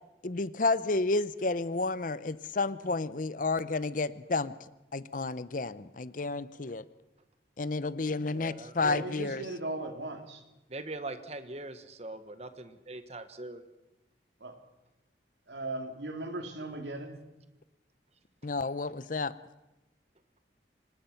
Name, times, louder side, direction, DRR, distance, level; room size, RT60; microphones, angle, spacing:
voice 1, 0.2-4.5 4.9-6.8 7.6-9.4 18.4-19.3, left 3 dB, 45° left, 16 dB, 0.7 m, -31 dB
voice 2, 8.1-9.0 10.7-13.6 18.4-18.5, right 2 dB, 35° right, 10 dB, 1.3 m, -42 dB
voice 3, 8.8-10.4 14.4-14.5 15.5-17.2, right 2 dB, 75° right, 6 dB, 2.9 m, -38 dB
26.0 x 19.5 x 5.8 m, 0.99 s
head